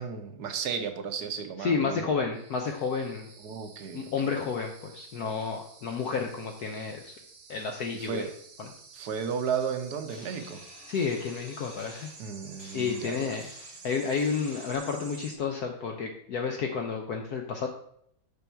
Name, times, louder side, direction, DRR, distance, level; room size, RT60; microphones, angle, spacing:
voice 1, 0.0-2.1 3.4-4.3 7.9-8.3 8.9-10.6 12.2-13.3, right 6 dB, 65° right, 7 dB, 1.2 m, -34 dB
voice 2, 1.6-3.3 3.9-7.1 7.5-8.3 8.6-8.7 10.9-12.1 12.7-13.5 13.8-17.7, left 5 dB, 65° left, 3 dB, 1.1 m, -31 dB
sound 1, 2.3-15.4, right 4 dB, 90° right, 2.0 m, -50 dB
sound 2, 10.1-14.8, left 2 dB, 90° left, 2.3 m, -52 dB
6.9 x 5.5 x 4.4 m, 0.69 s
omnidirectional pair, 2.1 m